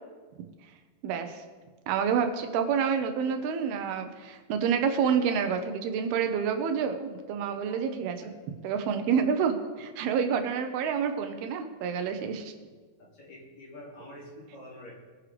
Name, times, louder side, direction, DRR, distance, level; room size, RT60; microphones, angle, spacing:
voice 1, 1.0-1.4 1.9-8.2 8.6-12.5, right 7 dB, 85° right, 6 dB, 2.9 m, -28 dB
voice 2, 13.0-14.9, left 1 dB, 50° left, -4 dB, 3.7 m, -46 dB
21.5 x 9.9 x 3.4 m, 1.4 s
omnidirectional pair, 4.4 m